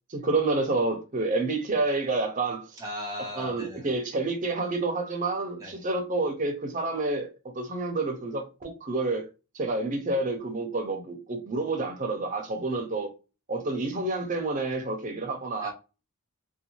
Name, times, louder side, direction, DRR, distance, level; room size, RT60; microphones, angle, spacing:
voice 1, 0.1-2.8 3.4-9.3 9.5-13.1 13.5-15.7, right 2 dB, 35° right, 0.6 m, -29 dB
voice 2, 2.8-4.0 5.6-5.8 12.7-12.8 15.6-15.7, equal, 15° right, 1.0 m, -38 dB
2.6 x 2.2 x 2.9 m
head